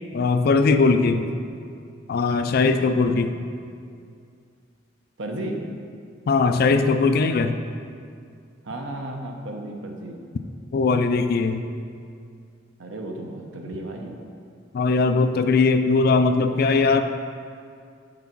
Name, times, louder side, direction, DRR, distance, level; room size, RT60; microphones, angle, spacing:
voice 1, 0.1-1.2 2.1-3.3 6.3-7.6 10.7-11.6 14.7-17.0, left 4 dB, 55° left, 8 dB, 0.4 m, -20 dB
voice 2, 1.1-1.4 2.6-3.2 5.2-5.6 8.6-10.2 12.8-14.2, right 1 dB, 85° right, 2 dB, 0.8 m, -34 dB
6.0 x 4.0 x 6.0 m, 2.3 s
head